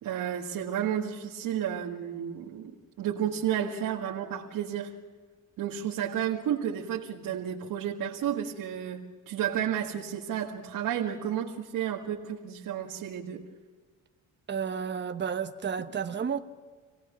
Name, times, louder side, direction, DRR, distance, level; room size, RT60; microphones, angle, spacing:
voice 1, 0.0-2.7 3.0-4.9 5.6-13.4, right 9 dB, 70° right, 1.8 m, -32 dB
voice 2, 14.5-16.4, right 7 dB, 30° right, 1.1 m, -31 dB
27.5 x 17.5 x 6.2 m
cardioid pair, 95°, 35 cm